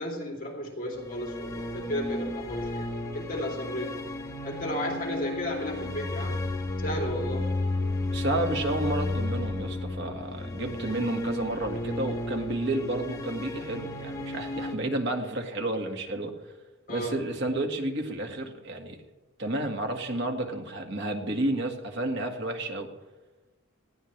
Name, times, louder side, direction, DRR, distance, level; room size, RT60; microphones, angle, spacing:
voice 1, 0.0-4.0 4.4-6.4 6.8-7.5 16.9-17.2, left 1 dB, 40° left, 0 dB, 3.2 m, -34 dB
sound 1, 0.9-14.8, left 2 dB, 15° left, 1.2 m, -33 dB
voice 2, 8.1-16.3 16.9-19.0 19.4-22.9, right 1 dB, 55° right, 4 dB, 1.9 m, -31 dB
19.5 x 15.0 x 3.3 m, 1.1 s
head